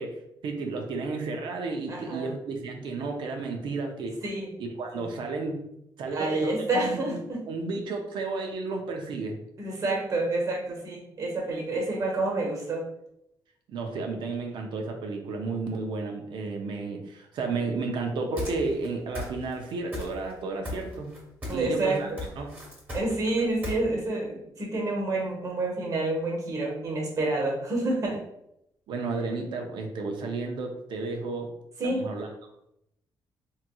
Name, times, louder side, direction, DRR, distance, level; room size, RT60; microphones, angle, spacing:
voice 1, 0.0-4.2 4.6-5.7 6.0-7.0 7.3-9.4 13.7-21.1 21.5-22.1 22.4-22.5 28.9-31.5 31.8-32.3, right 3 dB, 70° right, 3 dB, 0.5 m, -32 dB
voice 2, 1.9-2.3 4.2-4.5 4.9-5.0 6.1-7.4 9.6-12.9 21.5-22.2 22.9-28.2 31.8-32.1, right 2 dB, 40° right, -1 dB, 1.0 m, -28 dB
sound 1, 18.4-18.9 19.1-19.6 19.9-20.4 20.6-21.7 21.9-23.7, left 1 dB, 20° right, 1.2 m, -36 dB
3.6 x 2.9 x 2.2 m, 0.81 s
cardioid pair, 140°, 8 cm